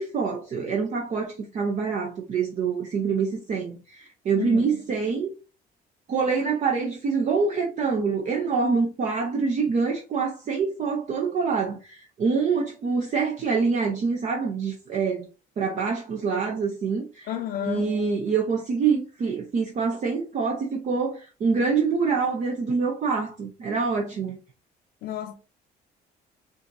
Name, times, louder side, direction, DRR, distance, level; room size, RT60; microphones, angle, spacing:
voice 1, 0.0-5.3 6.1-15.3 15.6-17.3 17.6-24.4, right 5 dB, 45° right, 0.7 m, -26 dB
voice 2, 4.4-4.8 17.3-17.9 25.0-25.3, left 10 dB, 80° left, 0.6 m, -31 dB
4.9 x 2.6 x 2.6 m
cardioid pair, 110°, 17 cm